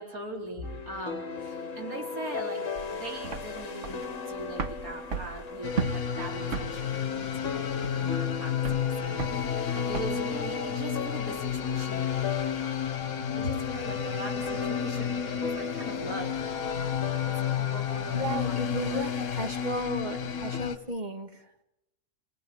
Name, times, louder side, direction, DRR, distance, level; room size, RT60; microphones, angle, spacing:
voice 1, 0.0-2.7 2.9-12.1 13.3-16.4 17.2-19.1, right 1 dB, 90° right, 1 dB, 4.6 m, -41 dB
sound 1, 0.6-20.6, left 5 dB, 60° left, 1.8 m, -38 dB
sound 2, 2.8-10.2, right 6 dB, 60° right, 1.5 m, -36 dB
sound 3, 5.6-20.8, left 8 dB, 80° left, 1.6 m, -31 dB
voice 2, 18.1-21.6, equal, 30° right, 6 dB, 2.1 m, -34 dB
29.0 x 19.5 x 8.7 m, 0.87 s
omnidirectional pair, 1.5 m